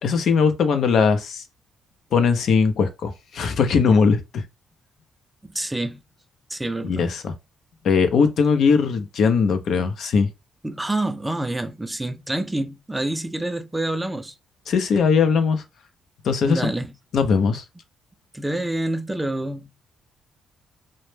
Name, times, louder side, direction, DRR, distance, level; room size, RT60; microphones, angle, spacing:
voice 1, 0.0-1.4 2.1-4.4 6.8-7.3 7.8-10.3 14.7-15.6 16.2-16.7 17.1-17.6, left 5 dB, 65° left, 0.5 m, -20 dB
voice 2, 5.5-6.0 6.5-7.1 10.6-14.3 16.5-16.9 18.3-19.7, right 1 dB, 10° right, 0.4 m, -27 dB
2.0 x 2.0 x 3.1 m
cardioid pair, 90°, 0 cm